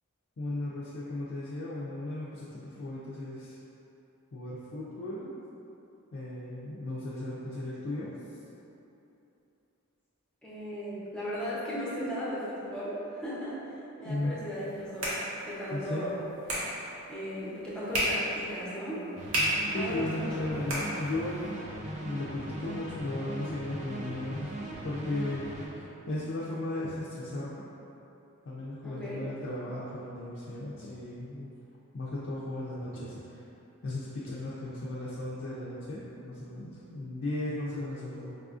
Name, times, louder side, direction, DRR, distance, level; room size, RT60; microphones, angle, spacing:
voice 1, 0.4-3.6 4.3-5.3 6.1-8.1 14.0-14.5 15.7-16.1 19.7-21.6 22.0-24.5 24.8-27.6 28.4-31.5 31.9-33.4 33.8-38.3, left 1 dB, 55° left, -8 dB, 0.4 m, -36 dB
voice 2, 10.4-15.2 15.4-16.2 17.1-19.1 19.7-20.7 28.8-29.3, equal, 5° left, -9 dB, 0.6 m, -36 dB
sound 1, 14.5-21.5, equal, 65° right, 0.9 m, -35 dB
sound 2, 19.2-25.7, right 1 dB, 30° right, 0.4 m, -39 dB
4.7 x 2.4 x 2.4 m, 2.9 s
head